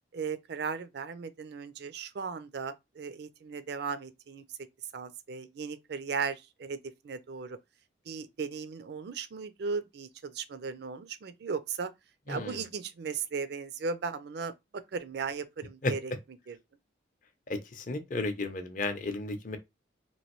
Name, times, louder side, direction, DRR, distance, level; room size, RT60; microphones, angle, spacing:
voice 1, 0.1-4.4 4.9-6.8 7.0-7.6 8.1-11.9 12.3-16.1 16.5-16.6, right 5 dB, 55° right, 0.4 m, -36 dB
voice 2, 12.3-12.6 15.8-15.9 17.5-19.6, left 2 dB, 45° left, 0.6 m, -33 dB
3.0 x 2.5 x 2.9 m
head